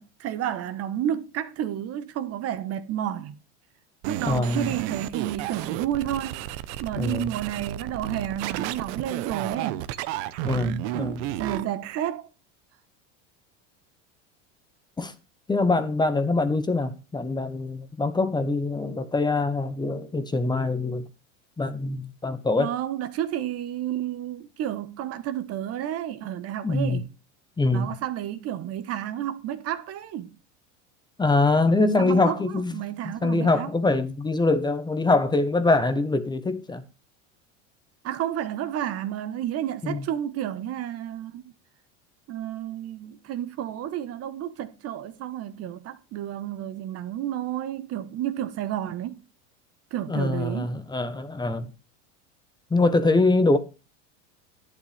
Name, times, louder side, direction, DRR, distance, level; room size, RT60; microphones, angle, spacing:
voice 1, 0.0-3.4 4.1-6.4 6.8-9.9 11.4-12.3 22.5-27.1 27.7-30.3 32.0-33.7 38.0-41.5 42.3-49.2 49.9-50.8, right 11 dB, 40° right, 1.2 m, -31 dB
sound 1, 4.0-12.1, right 13 dB, 65° right, 1.0 m, -33 dB
voice 2, 4.3-4.7 7.0-7.2 10.4-11.3 15.0-15.1 15.5-21.0 21.6-22.7 26.6-27.0 27.6-27.9 31.2-36.8 39.8-40.0 50.1-51.7 52.7-53.6, left 3 dB, 10° left, 1.1 m, -24 dB
11.5 x 10.0 x 3.4 m
supercardioid pair, 130°, 37 cm